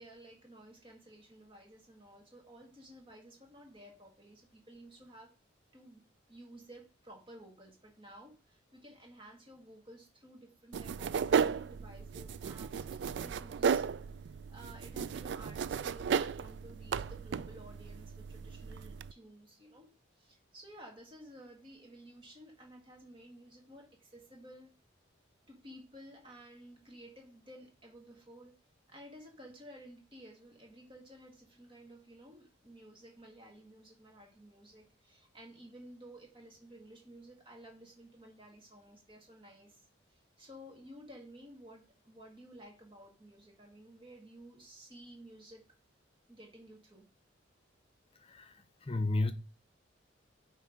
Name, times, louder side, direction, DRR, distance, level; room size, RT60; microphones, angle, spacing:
voice 1, 0.0-5.3 5.7-24.7 25.5-28.5 28.9-45.6 46.3-47.1, right 1 dB, 25° right, 1.7 m, -54 dB
sound 1, 10.7-19.1, right 6 dB, 60° right, 0.3 m, -35 dB
voice 2, 48.8-49.3, left 2 dB, 30° left, 0.6 m, -31 dB
9.1 x 3.3 x 5.1 m
head